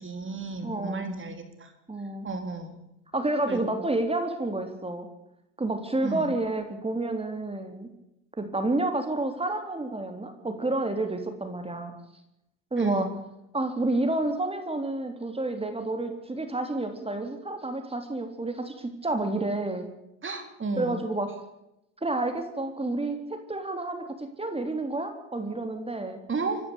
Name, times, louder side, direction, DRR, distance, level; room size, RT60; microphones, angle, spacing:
voice 1, 0.0-1.7 2.2-2.8 3.5-3.8 6.0-6.3 12.8-13.1 20.2-21.0 26.3-26.6, right 3 dB, 30° right, 6 dB, 3.9 m, -33 dB
voice 2, 0.6-1.1 1.9-2.3 3.1-5.1 5.6-7.9 8.4-11.9 12.7-13.1 13.5-19.9 20.8-21.3 22.0-26.2, right 2 dB, 15° right, 6 dB, 3.6 m, -29 dB
26.5 x 12.0 x 8.3 m, 0.85 s
hypercardioid pair, 70°, 38 cm